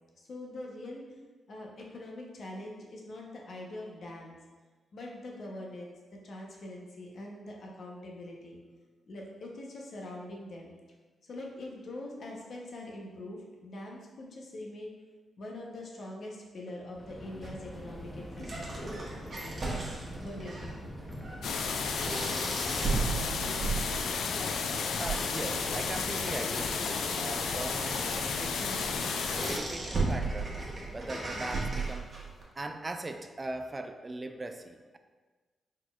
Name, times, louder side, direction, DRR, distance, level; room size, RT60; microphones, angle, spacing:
voice 1, 0.2-1.0 1.5-4.4 4.9-5.9 6.2-8.6 9.1-10.8 11.2-14.9 15.4-19.0 20.2-20.8, left 1 dB, 65° left, -1 dB, 0.8 m, -43 dB
Subway metro underground, 16.9-31.7, equal, 25° left, 0.7 m, -44 dB
sound 1, 17.4-32.4, right 3 dB, 50° right, 1.1 m, -37 dB
sound 2, 21.4-29.6, left 5 dB, 85° left, 0.3 m, -32 dB
voice 2, 24.9-30.6 30.9-32.1 32.6-35.0, right 2 dB, 30° right, 7 dB, 0.3 m, -40 dB
4.3 x 4.0 x 2.3 m, 1.3 s
cardioid pair, 60°, 0 cm